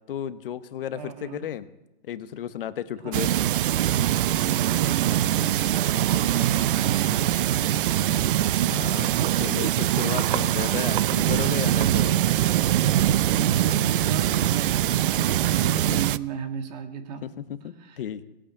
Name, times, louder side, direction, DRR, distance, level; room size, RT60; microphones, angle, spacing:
voice 1, 0.1-1.7 2.0-3.3 8.6-12.2 15.6-16.1 17.2-18.2, left 10 dB, 70° left, 13 dB, 1.1 m, -34 dB
voice 2, 0.9-1.5 3.0-3.1 4.5-7.9 13.3-17.2 17.8-18.0, right 7 dB, 45° right, 8 dB, 1.9 m, -35 dB
sound 1, 3.1-16.2, right 12 dB, 65° right, 0.5 m, -23 dB
18.0 x 8.8 x 8.8 m, 0.97 s
hypercardioid pair, 155°, 29 cm